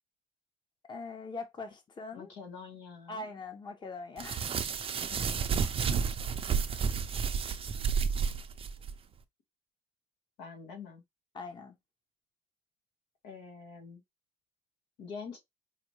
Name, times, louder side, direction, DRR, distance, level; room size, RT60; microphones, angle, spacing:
voice 1, 0.9-2.3 3.1-4.5 11.3-11.8, left 3 dB, 25° left, 0.8 m, -42 dB
voice 2, 2.1-3.3 5.1-6.1 10.4-11.0 13.2-14.0 15.0-15.4, left 5 dB, 85° left, 1.6 m, -46 dB
sound 1, 4.2-8.9, right 6 dB, 35° right, 0.5 m, -31 dB
5.0 x 2.1 x 3.1 m
cardioid pair, 110°, 17 cm